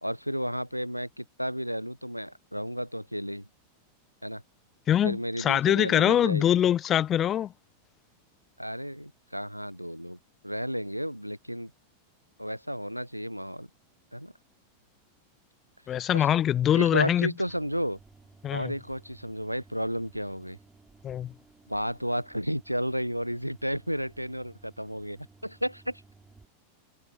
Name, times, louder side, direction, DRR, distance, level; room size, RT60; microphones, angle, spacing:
voice 1, 0.0-3.5 4.2-4.4 5.0-6.6 8.6-10.2 10.4-11.7 12.4-13.7 14.1-14.3 16.1-16.3 16.7-18.0 18.5-20.6 21.7-26.0, equal, 90° right, 1.1 m, -32 dB
voice 2, 4.9-7.5 15.9-17.3 18.4-18.7 21.0-21.3, left 10 dB, 30° left, 1.1 m, -23 dB
sound 1, 17.5-26.5, right 3 dB, 10° right, 5.9 m, -57 dB
figure-of-eight pair, 90°, 0 cm